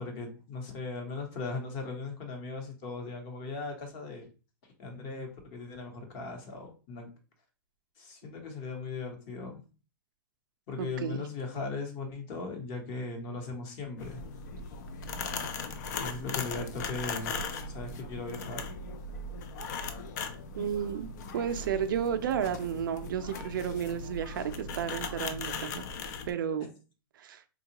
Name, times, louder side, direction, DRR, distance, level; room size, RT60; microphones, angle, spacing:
voice 1, 0.0-4.3 4.8-7.1 8.0-9.6 10.7-14.2 16.0-18.7, left 3 dB, 35° left, 1.0 m, -38 dB
voice 2, 10.8-11.2 20.6-21.1 21.3-25.9 26.3-26.7 27.2-27.4, right 8 dB, 65° right, 0.4 m, -32 dB
sound 1, 14.0-26.3, left 4 dB, 50° left, 0.5 m, -38 dB
3.7 x 2.2 x 2.9 m
hypercardioid pair, 155°, 12 cm